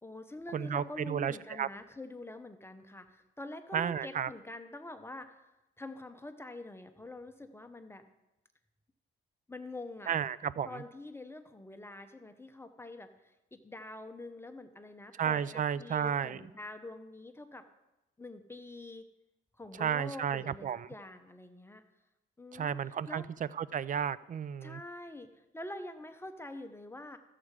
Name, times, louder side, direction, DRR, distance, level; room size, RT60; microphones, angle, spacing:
voice 1, 0.0-8.0 9.5-10.1 10.6-17.7 18.2-19.1 19.6-21.8 22.4-22.8 23.1-23.3 24.6-27.2, left 2 dB, 10° left, 8 dB, 0.8 m, -46 dB
voice 2, 0.5-1.7 3.7-4.3 10.1-10.8 15.2-16.5 19.7-20.9 22.5-23.2 23.5-24.8, right 8 dB, 40° right, 19 dB, 0.4 m, -33 dB
13.5 x 7.6 x 4.8 m, 0.96 s
cardioid pair, 90°, 20 cm